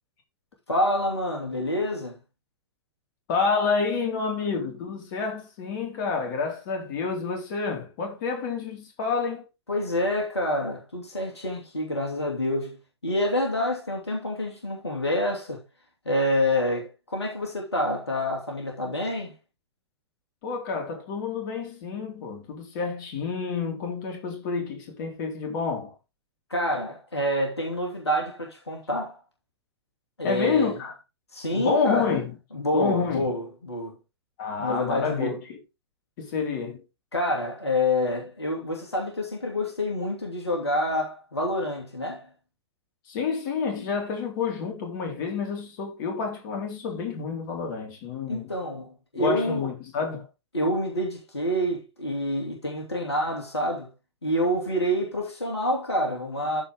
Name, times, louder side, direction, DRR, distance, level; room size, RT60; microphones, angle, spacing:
voice 1, 0.7-2.2 9.7-15.6 16.0-19.3 26.5-29.2 30.2-30.8 31.3-32.2 32.5-34.0 34.6-35.4 37.1-42.3 48.3-49.7 50.5-53.9 54.2-56.6, left 1 dB, 85° left, 2.8 m, -27 dB
voice 2, 3.3-9.5 20.4-26.0 30.2-30.9 31.5-32.3 32.7-33.3 34.4-35.6 36.2-36.8 43.1-48.5 49.1-50.3, left 5 dB, 50° left, 4.0 m, -29 dB
14.0 x 4.6 x 3.7 m
figure-of-eight pair, 100°, 13 cm